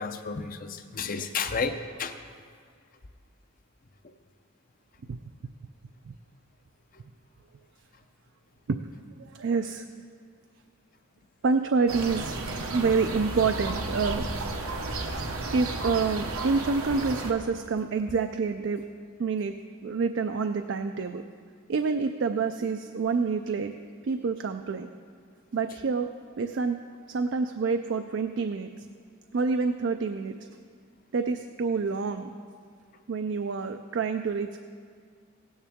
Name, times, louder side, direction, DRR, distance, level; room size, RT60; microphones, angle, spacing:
voice 1, 0.0-2.2 6.9-7.0 15.3-15.4, left 5 dB, 40° left, 8 dB, 0.6 m, -32 dB
voice 2, 9.2-9.9 11.4-12.4 12.7-14.2 15.5-18.8 19.2-19.5 19.8-21.2 21.7-23.7 24.0-24.9 25.5-26.1 26.4-26.8 27.1-28.9 29.3-30.3 31.1-32.3 33.1-34.6, right 4 dB, 55° right, 7 dB, 0.4 m, -27 dB
sound 1, 11.9-17.3, right 2 dB, 90° right, 1.1 m, -33 dB
17.0 x 9.4 x 3.6 m, 2.1 s
head